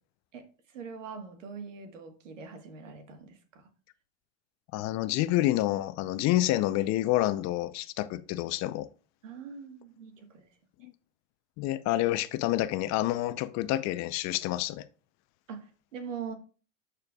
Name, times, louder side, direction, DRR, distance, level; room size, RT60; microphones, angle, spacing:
voice 1, 0.3-3.7 9.2-10.5 10.8-10.9 15.5-16.3, right 6 dB, 90° right, 1.5 m, -43 dB
voice 2, 4.7-8.9 10.8-10.9 11.6-14.8, left 15 dB, 45° left, 0.7 m, -28 dB
11.5 x 4.5 x 2.3 m
hypercardioid pair, 100°, 37 cm